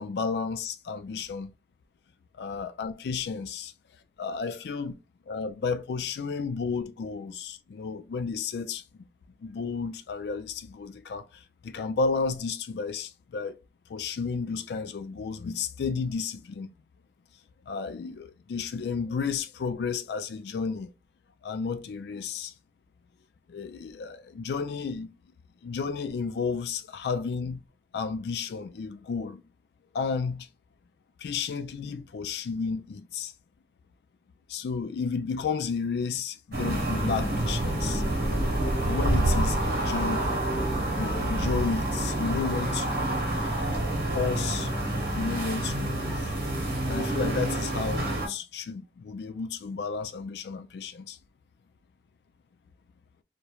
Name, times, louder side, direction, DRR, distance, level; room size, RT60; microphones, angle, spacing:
voice 1, 0.0-1.5 2.4-3.7 4.2-5.0 5.3-8.8 9.4-13.6 13.9-16.7 17.7-20.9 21.4-22.5 23.5-25.1 25.6-27.6 27.9-29.4 29.9-30.5 31.2-33.3 34.5-38.0 38.8-40.3 40.9-43.0 44.1-44.7 45.1-46.3 46.9-51.2, left 5 dB, 65° left, 0.3 m, -32 dB
sound 1, 36.5-48.3, right 1 dB, 60° right, 0.9 m, -28 dB
2.9 x 2.1 x 2.3 m
head